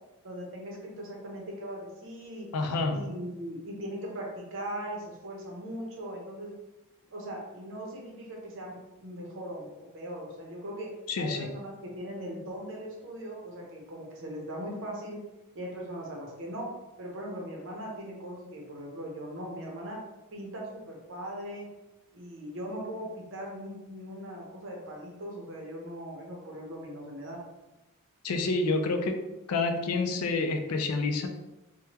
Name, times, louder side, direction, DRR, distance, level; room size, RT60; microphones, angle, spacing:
voice 1, 0.2-2.5 2.9-6.5 7.1-10.9 11.2-15.2 15.5-16.7 17.0-20.0 20.3-21.7 22.1-27.4, equal, 60° right, -1 dB, 0.8 m, -39 dB
voice 2, 2.5-3.0 11.1-11.5 28.2-29.2 29.5-31.3, left 3 dB, 80° left, 6 dB, 0.4 m, -28 dB
3.4 x 2.2 x 2.9 m, 1.0 s
head